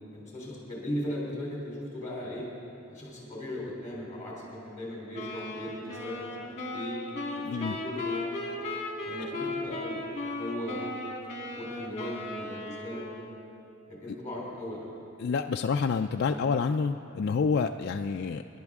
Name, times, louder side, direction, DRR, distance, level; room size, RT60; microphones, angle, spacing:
voice 1, 0.1-2.5 2.9-7.0 7.5-8.2 8.5-8.7 9.0-10.0 10.3-10.8 11.5-13.0 13.9-15.0 16.3-16.4, left 1 dB, 15° left, -5 dB, 3.3 m, -38 dB
sound 1, 5.1-13.5, left 2 dB, 35° left, 1.6 m, -36 dB
voice 2, 7.4-7.8 9.2-9.3 15.2-18.4, left 5 dB, 50° left, 5 dB, 0.3 m, -28 dB
26.0 x 11.0 x 3.6 m, 2.8 s
head